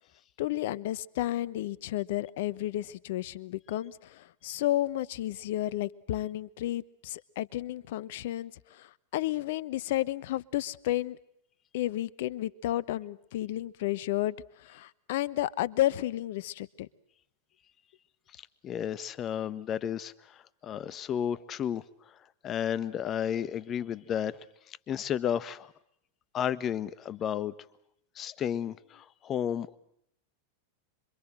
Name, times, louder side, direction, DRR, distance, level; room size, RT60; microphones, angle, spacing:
voice 1, 0.4-11.2 11.7-16.9, left 14 dB, 65° left, 19 dB, 1.1 m, -32 dB
voice 2, 18.6-21.8 22.4-25.7 26.3-27.5 28.1-29.8, left 9 dB, 35° left, 16 dB, 1.4 m, -32 dB
26.5 x 24.5 x 7.7 m, 0.74 s
hypercardioid pair, 95°, 0 cm